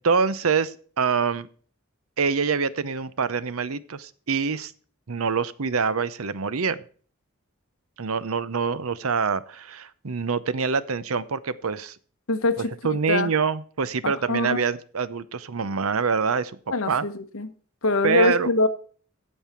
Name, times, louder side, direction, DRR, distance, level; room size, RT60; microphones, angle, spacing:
voice 1, 0.0-1.5 2.2-4.7 5.1-6.8 8.0-12.0 12.6-16.5 16.9-17.0 18.0-18.5, right 5 dB, 85° right, 16 dB, 0.7 m, -25 dB
voice 2, 12.3-13.3 14.0-14.7 16.7-17.5 17.8-18.7, left 2 dB, 75° left, 9 dB, 1.1 m, -24 dB
15.5 x 5.5 x 4.4 m, 0.43 s
head